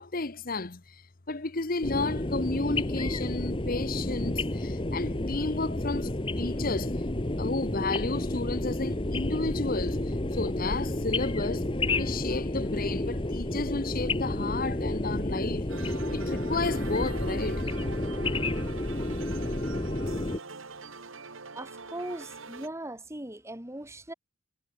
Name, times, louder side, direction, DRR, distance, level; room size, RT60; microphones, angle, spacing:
voice 1, 0.0-7.0 7.4-11.7 12.0-17.6, left 3 dB, 45° left, 1.2 m, -32 dB
sound 1, 1.8-20.4, left 1 dB, 25° left, 1.3 m, -30 dB
sound 2, 15.7-22.7, right 4 dB, 80° right, 2.2 m, -44 dB
voice 2, 21.5-24.1, right 1 dB, 15° right, 2.2 m, -39 dB
head